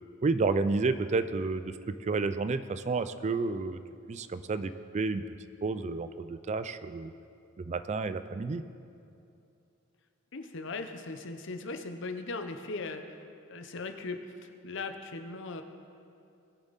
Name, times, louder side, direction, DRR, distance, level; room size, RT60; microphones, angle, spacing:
voice 1, 0.2-3.8 4.1-5.2 5.6-7.1 7.6-8.6, right 3 dB, 35° right, 12 dB, 0.3 m, -30 dB
voice 2, 10.3-13.2 13.5-15.6, left 3 dB, 60° left, 7 dB, 0.8 m, -39 dB
20.0 x 7.1 x 4.1 m, 2.6 s
head